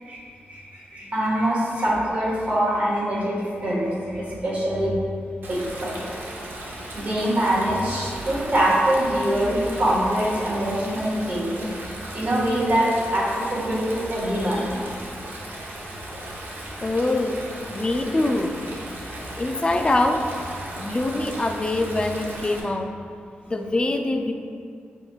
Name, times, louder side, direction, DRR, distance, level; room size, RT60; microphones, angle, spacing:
voice 1, 0.5-5.0 5.5-6.0 6.9-11.6 12.1-14.8, right 1 dB, 35° right, -7 dB, 1.5 m, -24 dB
Stream, 5.4-22.6, right 1 dB, 60° right, 0.8 m, -36 dB
voice 2, 16.8-17.4 17.7-18.6 19.3-20.3 20.8-23.0 23.5-24.3, left 2 dB, 25° left, 5 dB, 0.3 m, -24 dB
7.3 x 3.0 x 2.4 m, 2.2 s
wide cardioid pair, 105°, 4 cm